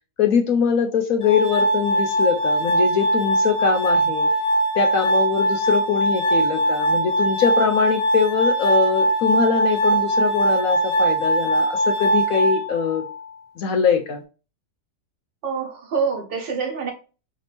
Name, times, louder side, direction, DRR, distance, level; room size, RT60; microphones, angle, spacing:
voice 1, 0.2-4.3 4.7-13.0 13.6-14.2, left 7 dB, 65° left, 0.9 m, -22 dB
Glass, 1.2-13.2, right 1 dB, 85° left, 0.4 m, -21 dB
voice 2, 15.4-16.9, right 5 dB, 80° right, 2.0 m, -26 dB
5.0 x 2.7 x 3.3 m
omnidirectional pair, 1.9 m